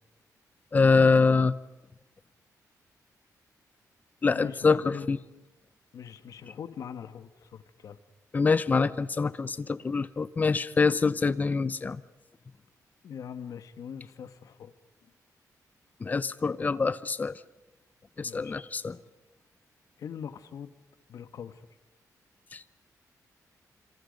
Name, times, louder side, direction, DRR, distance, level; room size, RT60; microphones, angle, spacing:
voice 1, 0.7-1.5 4.2-5.2 8.3-12.0 16.0-17.4 18.2-19.0 22.5-22.8, left 4 dB, 25° left, 16 dB, 0.7 m, -25 dB
voice 2, 4.3-5.1 5.9-8.0 13.0-14.7 15.0-15.1 18.2-18.6 20.0-20.7 21.1-21.7, left 8 dB, 60° left, 12 dB, 1.3 m, -42 dB
27.0 x 26.5 x 5.3 m, 0.95 s
wide cardioid pair, 160°, 7 cm